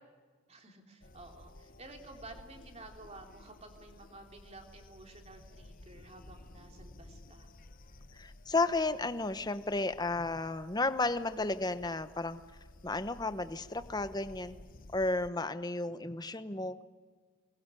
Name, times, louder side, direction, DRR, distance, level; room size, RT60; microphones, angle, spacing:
voice 1, 0.5-7.5, right 2 dB, 30° right, 3 dB, 3.4 m, -52 dB
sound 1, 1.0-15.3, left 1 dB, 40° left, 1.1 m, -55 dB
voice 2, 8.1-12.4 12.8-14.6 14.9-16.8, left 2 dB, 20° left, 12 dB, 1.0 m, -33 dB
24.0 x 21.0 x 9.9 m, 1.5 s
head